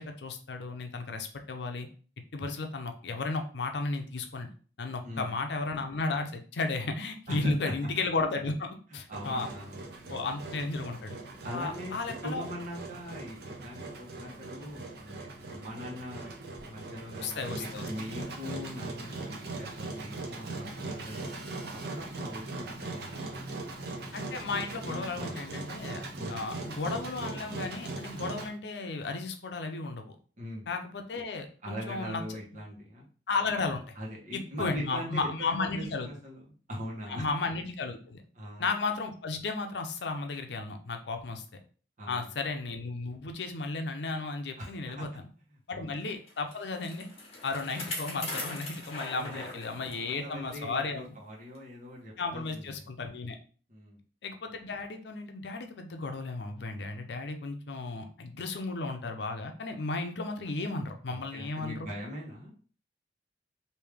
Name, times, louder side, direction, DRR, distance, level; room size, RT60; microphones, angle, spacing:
voice 1, 0.0-1.9 2.3-4.5 4.8-9.5 10.1-11.2 11.5-12.4 17.2-17.9 24.1-26.0 26.3-30.2 30.7-32.4 33.3-33.9 34.3-36.1 37.1-38.2 38.6-41.4 42.1-45.2 45.7-47.1 47.4-51.1 52.2-53.4 54.2-61.9, left 3 dB, 70° left, 5 dB, 0.6 m, -34 dB
voice 2, 5.0-5.3 7.3-7.7 9.1-10.2 11.4-11.9 12.2-16.4 16.6-21.3 21.7-23.5 24.3-24.4 24.8-25.4 26.1-26.4 30.4-30.7 31.6-33.1 34.0-37.2 38.3-38.7 42.0-42.3 44.6-45.1 45.5-45.9 49.1-49.6 50.1-52.9 53.7-54.0 61.1-62.5, equal, 45° right, -3 dB, 1.2 m, -41 dB
Engine, 9.1-28.5, right 2 dB, 60° right, 0.7 m, -40 dB
Bicycle, 46.3-50.2 50.6-50.7 51.5-51.6, left 2 dB, 35° left, 1.2 m, -40 dB
3.3 x 2.7 x 3.4 m, 0.41 s
head